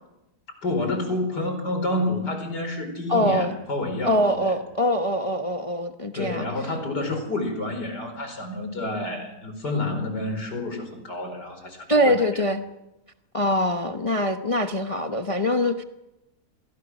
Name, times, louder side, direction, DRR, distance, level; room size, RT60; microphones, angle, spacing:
voice 1, 0.6-4.5 6.1-12.4, left 2 dB, 85° left, 6 dB, 5.3 m, -29 dB
voice 2, 3.1-3.6 4.0-6.5 11.9-12.6 13.3-15.8, equal, 25° left, 6 dB, 0.9 m, -23 dB
28.5 x 22.5 x 6.3 m, 0.94 s
omnidirectional pair, 1.7 m